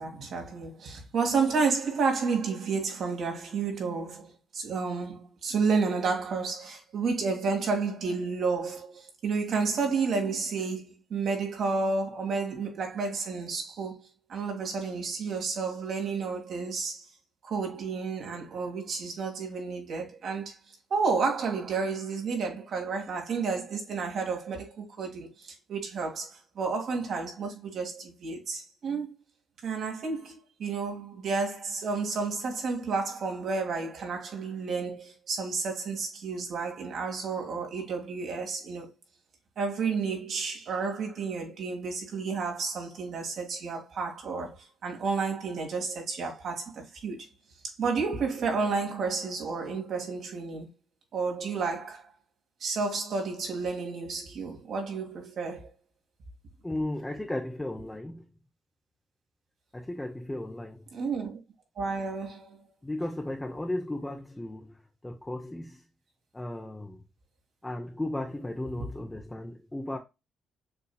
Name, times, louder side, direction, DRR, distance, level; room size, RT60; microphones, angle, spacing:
voice 1, 0.0-17.1 17.4-20.5 20.9-29.1 29.6-38.9 39.6-47.3 47.8-50.7 51.1-52.1 52.6-55.7 60.9-61.4 61.8-62.6, right 4 dB, 60° right, 2.0 m, -31 dB
voice 2, 56.6-58.3 59.7-60.9 62.8-65.8 66.3-67.0 67.6-70.0, left 1 dB, 10° left, 0.7 m, -35 dB
6.8 x 2.9 x 2.3 m
cardioid pair, 90°, 0 cm